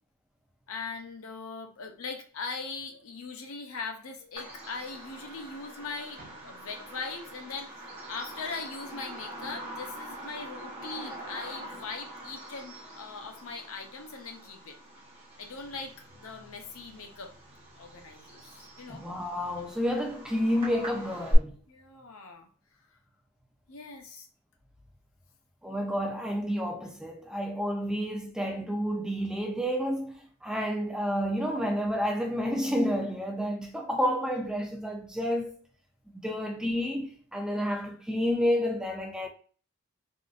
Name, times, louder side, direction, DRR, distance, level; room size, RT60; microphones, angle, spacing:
voice 1, 0.7-14.8 15.4-17.3 17.8-19.0 21.7-22.5 23.7-24.3, left 4 dB, 70° left, 0.6 m, -40 dB
Bird vocalization bird call bird song, 4.4-21.4, equal, 25° right, 1.0 m, -41 dB
voice 2, 18.9-21.6 25.6-35.6 36.2-39.3, equal, 5° right, 0.3 m, -30 dB
3.7 x 2.5 x 2.3 m
head